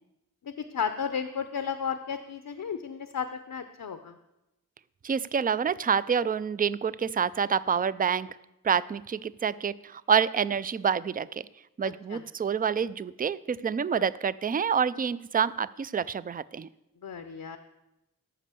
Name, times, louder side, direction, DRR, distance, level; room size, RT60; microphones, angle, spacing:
voice 1, 0.4-4.2 12.1-12.2 13.9-14.0 17.0-17.6, left 7 dB, 70° left, 9 dB, 0.7 m, -33 dB
voice 2, 5.0-8.3 8.6-11.4 11.8-16.7, right 7 dB, 25° right, 17 dB, 0.3 m, -27 dB
13.5 x 5.4 x 6.8 m, 0.92 s
wide cardioid pair, 60°, 35 cm